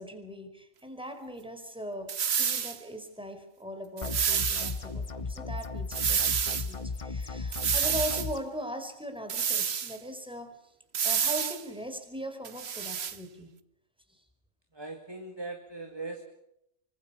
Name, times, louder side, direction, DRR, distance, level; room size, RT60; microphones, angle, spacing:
voice 1, 0.0-10.6 11.0-13.5, equal, 5° right, 6 dB, 4.7 m, -40 dB
sound 1, 2.1-2.8 4.0-4.8 5.9-6.7 7.5-8.3 9.3-10.0 10.9-11.6 12.4-13.2, right 7 dB, 55° right, 1.3 m, -29 dB
sound 2, 4.0-8.4, left 4 dB, 30° left, 0.9 m, -36 dB
voice 2, 14.7-16.2, right 3 dB, 20° right, 4 dB, 2.5 m, -39 dB
26.5 x 24.5 x 5.8 m, 0.81 s
omnidirectional pair, 1.4 m